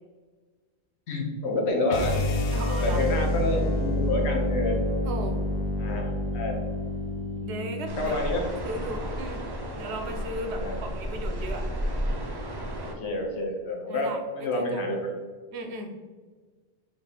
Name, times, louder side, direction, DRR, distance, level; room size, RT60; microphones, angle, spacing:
voice 1, 1.1-2.2 2.7-4.8 5.8-6.6 8.0-8.4 10.5-10.8 12.9-15.0, left 2 dB, 85° left, 0 dB, 1.1 m, -28 dB
sound 1, 1.9-8.0, left 1 dB, 55° left, 0.6 m, -28 dB
voice 2, 2.5-3.0 5.0-5.5 7.4-8.2 8.6-9.4 9.8-11.6 13.9-14.9 15.5-15.9, right 1 dB, 85° right, 4 dB, 0.9 m, -36 dB
sound 2, 7.9-12.9, equal, 40° right, 0.3 m, -32 dB
3.5 x 2.5 x 4.0 m, 1.5 s
omnidirectional pair, 1.1 m